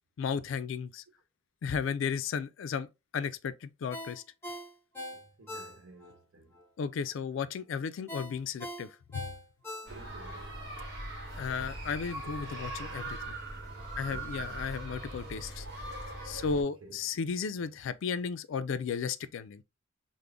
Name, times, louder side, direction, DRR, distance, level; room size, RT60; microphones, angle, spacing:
voice 1, 0.2-1.0 1.6-2.9 3.1-4.2 6.8-9.3 11.4-13.4 14.0-15.7 16.2-19.6, left 6 dB, 70° left, 0.3 m, -34 dB
Ringtone, 3.9-6.2 6.5-6.6 8.1-10.3 10.7-10.8, left 1 dB, 10° left, 0.9 m, -42 dB
voice 2, 5.1-6.6 9.8-10.7 14.1-14.6 16.5-17.0, right 2 dB, 90° right, 0.9 m, -54 dB
sound 1, 9.9-16.6, right 2 dB, 55° right, 1.1 m, -40 dB
3.7 x 2.0 x 3.3 m
head